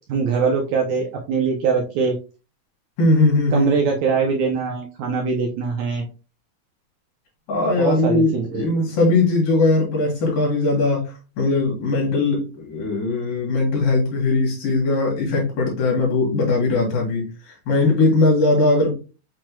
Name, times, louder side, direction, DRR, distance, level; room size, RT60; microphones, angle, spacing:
voice 1, 0.1-2.2 3.5-6.1 7.8-8.7, right 5 dB, 75° right, 1.6 m, -22 dB
voice 2, 3.0-3.7 7.5-11.1 11.4-17.3 17.7-18.9, left 2 dB, 85° left, 3.5 m, -19 dB
7.5 x 3.0 x 2.2 m
omnidirectional pair, 3.9 m